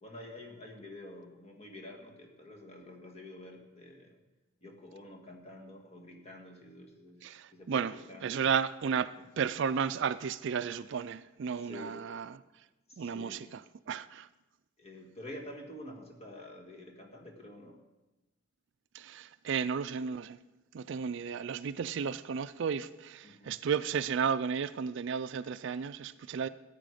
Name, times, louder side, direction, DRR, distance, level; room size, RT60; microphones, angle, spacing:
voice 1, 0.0-4.2 4.6-7.2 7.5-8.5 9.2-9.3 11.5-12.0 12.9-13.5 14.8-17.8 23.2-23.6, left 1 dB, 30° left, 1.7 m, -48 dB
voice 2, 7.2-7.9 8.2-9.1 9.4-12.3 13.0-13.4 13.9-14.3 18.9-20.4 20.7-26.5, right 6 dB, 60° right, 0.4 m, -33 dB
14.0 x 9.0 x 5.0 m
head